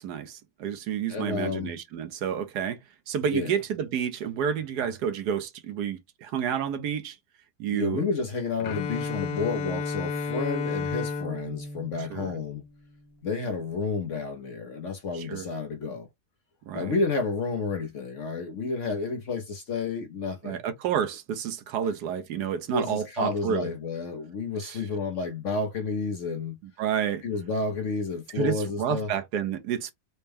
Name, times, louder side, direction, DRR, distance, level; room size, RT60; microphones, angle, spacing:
voice 1, 0.0-2.8 3.1-7.2 7.6-8.0 12.1-12.3 15.1-15.4 16.7-16.9 20.4-23.7 24.6-24.8 26.8-27.2 28.4-29.9, right 8 dB, 75° right, 1.2 m, -30 dB
voice 2, 1.1-1.7 3.3-3.6 7.7-12.7 13.2-16.1 16.7-20.6 21.7-21.9 22.7-26.6 27.2-29.1, left 4 dB, 60° left, 0.9 m, -30 dB
Bowed string instrument, 8.6-12.7, left 4 dB, 80° left, 1.3 m, -32 dB
4.3 x 2.2 x 3.4 m
omnidirectional pair, 1.8 m